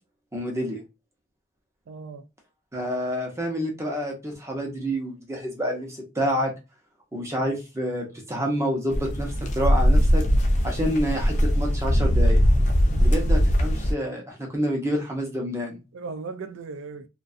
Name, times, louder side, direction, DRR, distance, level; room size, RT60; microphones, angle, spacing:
voice 1, 0.3-0.8 2.7-6.5 7.1-10.2 10.6-12.4 13.0-15.8, equal, 15° right, 0.6 m, -28 dB
voice 2, 1.9-2.3 12.9-13.2 15.9-17.1, right 4 dB, 70° right, 0.4 m, -37 dB
sound 1, 8.9-13.9, equal, 35° left, 0.4 m, -20 dB
2.5 x 2.2 x 2.4 m
head